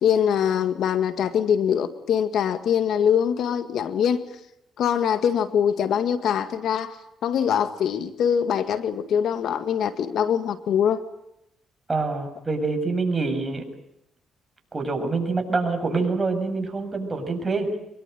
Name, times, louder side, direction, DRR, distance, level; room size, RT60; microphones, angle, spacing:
voice 1, 0.0-4.2 4.8-7.0 7.2-11.0, left 8 dB, 70° left, 10 dB, 1.9 m, -23 dB
voice 2, 11.9-13.6 14.7-17.8, right 3 dB, 25° right, 5 dB, 7.2 m, -26 dB
25.0 x 22.5 x 9.3 m, 0.83 s
cardioid pair, 90°, 0 cm